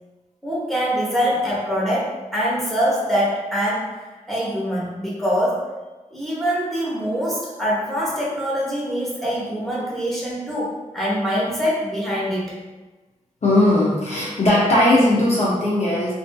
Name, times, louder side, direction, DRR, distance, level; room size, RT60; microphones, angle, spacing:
voice 1, 0.4-3.9 4.3-5.6 6.1-12.5, equal, ahead, -7 dB, 0.8 m, -24 dB
voice 2, 13.4-16.1, left 1 dB, 55° left, -6 dB, 0.5 m, -18 dB
2.5 x 2.4 x 2.2 m, 1.2 s
wide cardioid pair, 105°, 13 cm